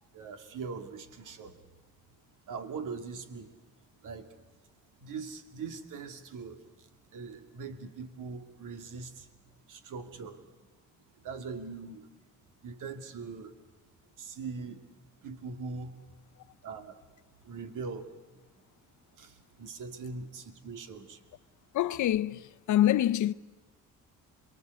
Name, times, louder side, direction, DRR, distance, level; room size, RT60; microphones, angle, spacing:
voice 1, 0.0-1.6 2.5-3.5 4.0-4.4 5.0-9.3 9.7-10.4 11.2-12.1 12.6-13.6 14.2-14.9 15.2-16.0 16.6-17.0 17.4-18.1 19.1-21.2, right 4 dB, 70° right, 2.5 m, -41 dB
voice 2, 21.7-23.3, left 12 dB, 65° left, 0.7 m, -26 dB
27.5 x 22.0 x 8.1 m
cardioid pair, 120°, 32 cm